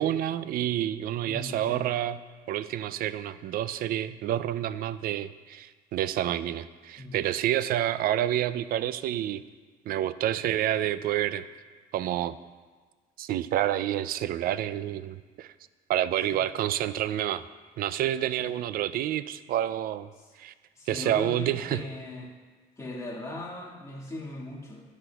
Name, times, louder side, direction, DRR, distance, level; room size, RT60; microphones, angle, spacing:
voice 1, 0.0-2.2 2.5-9.4 9.9-11.4 11.9-12.4 13.2-15.5 15.9-17.4 17.8-20.1 20.4-20.5 20.9-21.8, right 12 dB, 60° right, 15 dB, 0.4 m, -28 dB
voice 2, 1.2-1.8 7.0-7.2 16.3-16.4 18.4-18.5 20.2-20.3 20.8-22.3 22.8-24.8, left 2 dB, 20° left, -3 dB, 1.9 m, -39 dB
10.5 x 9.8 x 2.3 m, 1.4 s
cardioid pair, 110°, 17 cm